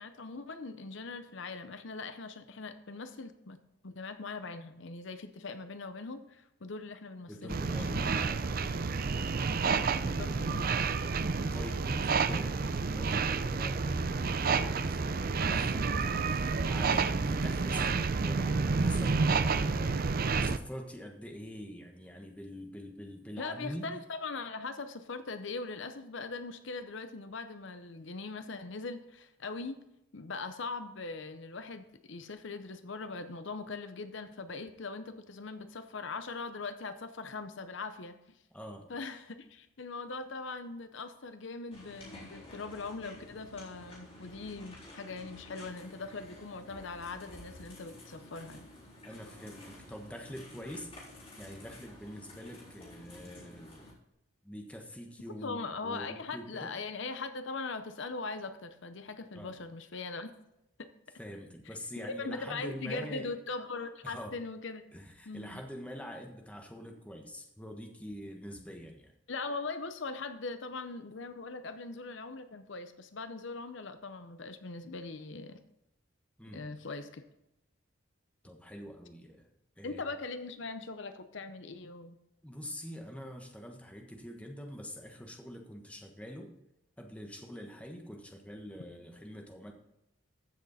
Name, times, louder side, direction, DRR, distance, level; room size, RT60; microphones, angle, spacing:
voice 1, 0.0-3.6 3.8-8.3 8.6-8.7 10.0-10.9 23.4-29.8 30.1-38.4 38.9-48.7 55.3-60.3 62.2-64.9 65.3-65.6 69.3-75.6 76.5-77.2 79.8-82.2, left 3 dB, 65° left, 9 dB, 0.7 m, -41 dB
voice 2, 7.3-8.8 11.2-20.0 20.4-23.9 38.5-38.9 49.0-50.9 51.4-53.9 54.4-56.7 59.3-59.6 61.2-63.3 64.0-64.3 64.9-69.1 76.4-76.6 78.4-79.5 79.8-80.0 82.4-86.5 87.0-89.7, equal, 5° left, 3 dB, 1.3 m, -45 dB
sound 1, 7.5-20.6, right 4 dB, 45° right, 0.5 m, -30 dB
sound 2, 41.7-53.9, left 1 dB, 30° left, 4.0 m, -51 dB
15.0 x 6.5 x 4.2 m, 0.85 s
head